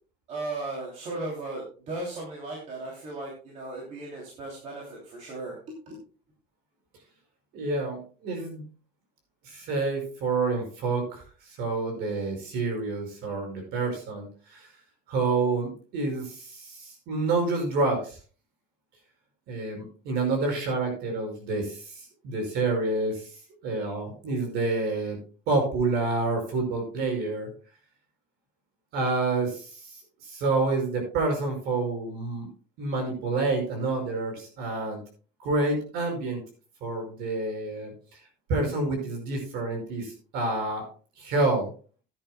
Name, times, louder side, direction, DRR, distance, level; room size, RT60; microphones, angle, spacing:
voice 1, 0.3-6.0, right 2 dB, 35° right, -2 dB, 2.9 m, -36 dB
voice 2, 7.5-8.6 9.5-14.7 15.1-18.2 19.5-23.3 23.6-25.2 25.5-27.5 28.9-32.5 32.8-35.0 35.4-36.4 36.8-37.9 38.5-40.8 41.2-41.7, right 3 dB, 50° right, 3 dB, 5.3 m, -28 dB
16.0 x 10.5 x 2.2 m, 0.39 s
cardioid pair, 180°, 21 cm